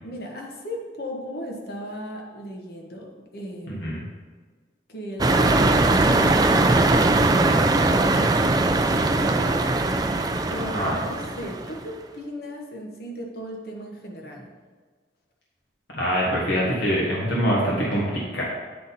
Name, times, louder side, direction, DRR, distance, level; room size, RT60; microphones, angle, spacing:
voice 1, 0.0-3.9 4.9-7.6 7.9-9.7 10.5-14.5, equal, 55° left, 0 dB, 1.1 m, -36 dB
voice 2, 3.7-4.0 10.5-11.0 15.9-18.4, equal, 75° left, -5 dB, 1.4 m, -24 dB
sound 1, 5.2-11.8, right 2 dB, 20° right, 0.3 m, -20 dB
9.0 x 4.0 x 4.1 m, 1.4 s
head